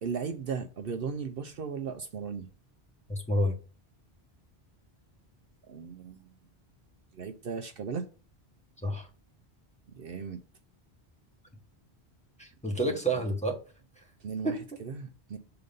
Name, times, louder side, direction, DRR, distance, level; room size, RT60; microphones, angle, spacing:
voice 1, 0.0-2.5 5.7-6.2 7.1-8.1 9.9-10.4 12.8-13.0 14.2-15.4, right 6 dB, 65° right, 0.8 m, -36 dB
voice 2, 3.1-3.6 8.8-9.1 12.4-13.6 14.4-14.6, right 1 dB, 5° left, 1.3 m, -29 dB
6.9 x 3.9 x 5.2 m
omnidirectional pair, 1.1 m